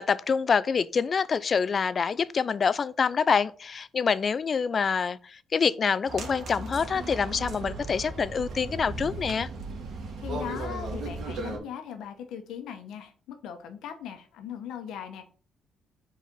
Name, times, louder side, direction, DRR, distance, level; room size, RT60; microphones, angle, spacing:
voice 1, 0.0-9.5, left 6 dB, 45° left, 0.4 m, -26 dB
sound 1, 6.1-11.6, right 2 dB, 65° right, 1.8 m, -36 dB
voice 2, 10.2-15.2, left 8 dB, 85° left, 0.9 m, -39 dB
4.8 x 4.1 x 5.3 m
cardioid pair, 90°, 0 cm